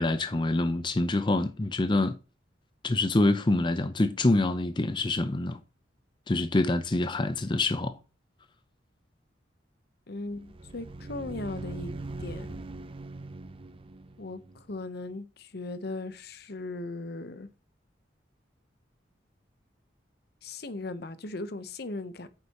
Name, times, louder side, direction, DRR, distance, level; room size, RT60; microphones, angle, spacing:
voice 1, 0.0-2.1 2.8-5.6 6.3-8.0, left 2 dB, 25° left, 0.5 m, -26 dB
voice 2, 10.1-11.9 12.2-12.5 14.2-14.4 14.7-17.5 20.4-22.3, left 2 dB, 55° left, 0.8 m, -37 dB
sound 1, 10.3-14.9, right 2 dB, 30° right, 0.6 m, -41 dB
9.0 x 6.7 x 2.9 m
head